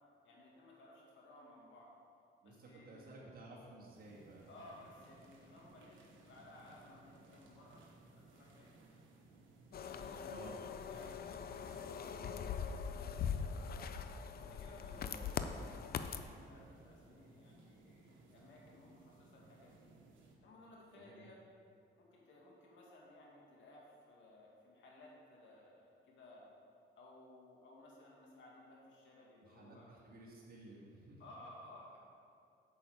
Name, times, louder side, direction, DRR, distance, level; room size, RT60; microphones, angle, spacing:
voice 1, 0.2-1.9 2.4-3.2 4.5-8.7 9.7-13.8 14.3-19.9 20.4-21.4 22.0-26.5 27.0-29.9 31.2-32.0, left 1 dB, 70° left, -3 dB, 2.2 m, -59 dB
voice 2, 2.4-4.5 10.2-10.6 14.9-15.3 21.0-21.3 29.4-31.2, right 2 dB, 50° right, -6 dB, 2.0 m, -55 dB
sound 1, 3.9-20.4, right 2 dB, 80° right, 1.4 m, -62 dB
sound 2, 9.7-16.2, left 7 dB, 50° left, 0.5 m, -42 dB
8.4 x 7.0 x 5.0 m, 2.5 s
cardioid pair, 90°, 20 cm